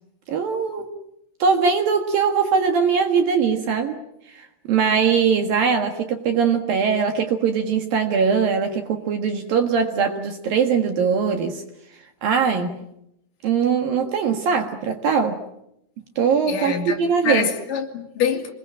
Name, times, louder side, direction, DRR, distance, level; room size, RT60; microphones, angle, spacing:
voice 1, 0.3-0.9 1.4-4.0 4.3-11.6 12.2-12.8 13.4-15.4 16.2-17.5, right 6 dB, 60° right, 2.8 m, -21 dB
voice 2, 16.5-18.5, left 7 dB, 50° left, 3.9 m, -25 dB
26.5 x 21.0 x 8.8 m
omnidirectional pair, 5.6 m